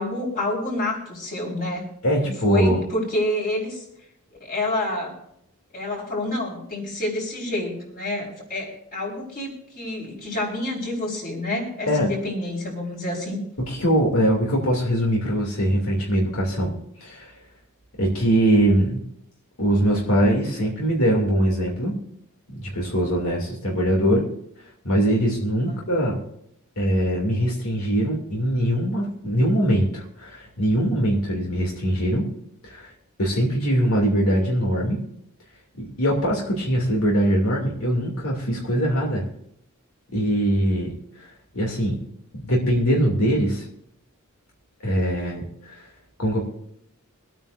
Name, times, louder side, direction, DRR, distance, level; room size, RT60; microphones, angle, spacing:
voice 1, 0.0-3.8 4.4-5.1 5.7-13.4 25.7-25.8, left 1 dB, 45° left, -2 dB, 4.6 m, -28 dB
voice 2, 2.0-2.8 11.9-12.1 13.6-16.7 17.0-17.3 18.0-19.0 19.6-22.0 22.5-24.2 24.8-26.2 26.8-32.3 32.6-32.9 33.2-35.0 35.8-39.3 40.1-41.3 41.5-42.0 42.4-43.7 44.8-45.8 46.2-46.4, equal, 85° left, -2 dB, 2.7 m, -22 dB
24.5 x 9.1 x 2.6 m, 0.74 s
head